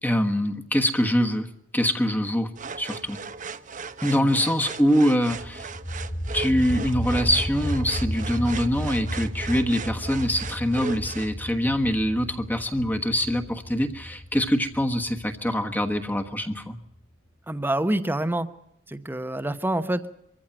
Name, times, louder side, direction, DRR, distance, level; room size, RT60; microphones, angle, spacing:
voice 1, 0.0-1.5 1.7-2.5 2.8-3.2 4.0-5.7 6.3-16.8, equal, 10° left, 5 dB, 1.3 m, -24 dB
sound 1, 2.5-11.3, right 5 dB, 40° right, 0.8 m, -38 dB
sound 2, 5.3-16.9, equal, 30° left, 2.1 m, -34 dB
voice 2, 17.5-18.5 18.9-20.0, right 1 dB, 10° right, 11 dB, 0.9 m, -26 dB
23.5 x 15.0 x 8.8 m, 0.77 s
head